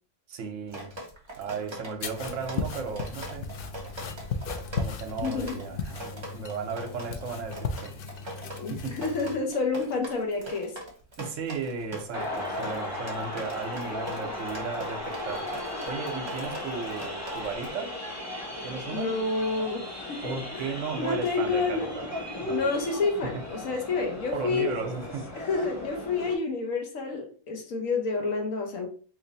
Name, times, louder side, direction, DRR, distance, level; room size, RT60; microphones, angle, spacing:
voice 1, 0.3-0.9 1.4-3.5 4.7-8.0 8.7-8.9 11.2-15.5 15.9-17.9 18.6-19.1 20.2-21.9 22.4-22.6 23.3-23.4 24.3-25.3, right 5 dB, 65° right, 1.0 m, -35 dB
Drip, 0.7-17.7, right 1 dB, 25° right, 0.7 m, -42 dB
sound 1, 2.0-9.4, left 5 dB, 85° left, 0.4 m, -36 dB
voice 2, 5.2-5.6 8.6-10.8 18.9-20.6 20.9-21.9 22.5-24.7 25.3-28.9, left 4 dB, 65° left, 1.3 m, -29 dB
sound 2, 12.1-26.3, left 1 dB, 15° left, 0.7 m, -36 dB
3.1 x 2.6 x 3.9 m
omnidirectional pair, 1.5 m